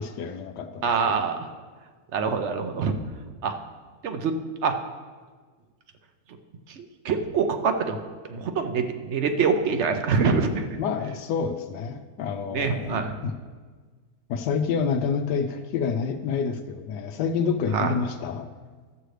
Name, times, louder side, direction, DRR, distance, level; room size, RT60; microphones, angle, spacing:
voice 1, 0.0-1.3 10.8-13.3 14.3-18.5, left 6 dB, 85° left, 7 dB, 1.2 m, -28 dB
voice 2, 0.8-1.4 2.1-2.9 3.4-3.5 4.0-4.4 4.6-4.7 6.8-8.0 8.3-10.7 12.5-13.1 17.7-17.9, right 5 dB, 60° right, 6 dB, 0.8 m, -25 dB
13.5 x 7.7 x 3.3 m, 1.5 s
omnidirectional pair, 1.8 m